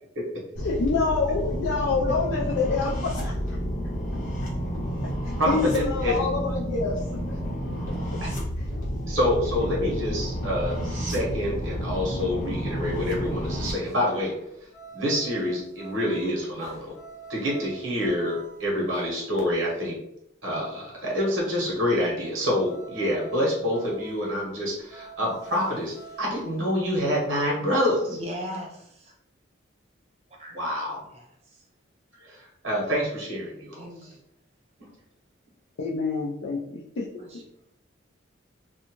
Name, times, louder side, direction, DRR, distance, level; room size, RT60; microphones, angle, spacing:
voice 1, 0.6-3.6 5.0-5.1 5.5-7.4 8.6-8.7 9.8-9.9 35.8-37.1 37.3-37.4, left 4 dB, 75° left, -3 dB, 0.4 m, -27 dB
sound 1, 0.6-13.7, equal, 40° left, 0.9 m, -30 dB
voice 2, 5.4-6.2 8.2-8.3 9.1-14.3 14.9-16.9 17.3-19.9 20.4-28.2 30.5-31.0 32.2-32.4 32.6-33.8 34.8-34.9, left 1 dB, 85° right, -3 dB, 1.2 m, -27 dB
sound 2, 11.9-19.1 22.5-26.7, right 5 dB, 15° left, 0.5 m, -47 dB
voice 3, 28.1-29.1 30.3-30.6 31.0-31.7 33.7-34.2 37.2-37.4, equal, 30° right, -1 dB, 0.6 m, -39 dB
2.7 x 2.2 x 2.9 m, 0.79 s
head